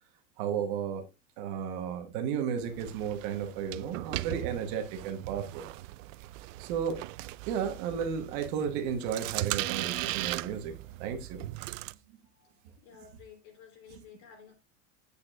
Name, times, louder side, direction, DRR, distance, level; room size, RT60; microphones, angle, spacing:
voice 1, 0.4-1.0 1.4-5.7 6.6-7.0 7.5-11.5 12.1-12.2, right 7 dB, 45° right, 1.1 m, -33 dB
sound 1, 2.6-11.9, right 18 dB, 85° right, 0.5 m, -38 dB
voice 2, 12.3-14.5, left 7 dB, 55° left, 3.3 m, -53 dB
9.5 x 8.3 x 2.4 m
supercardioid pair, 180°, 37 cm